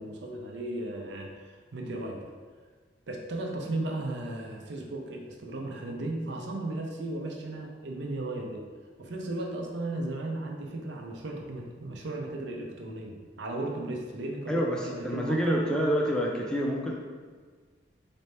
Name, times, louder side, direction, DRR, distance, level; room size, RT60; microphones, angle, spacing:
voice 1, 0.0-2.2 3.1-8.6 9.0-15.6, right 2 dB, 70° right, 1 dB, 0.6 m, -35 dB
voice 2, 14.5-17.0, equal, 5° left, -2 dB, 0.4 m, -28 dB
4.2 x 2.7 x 3.3 m, 1.5 s
head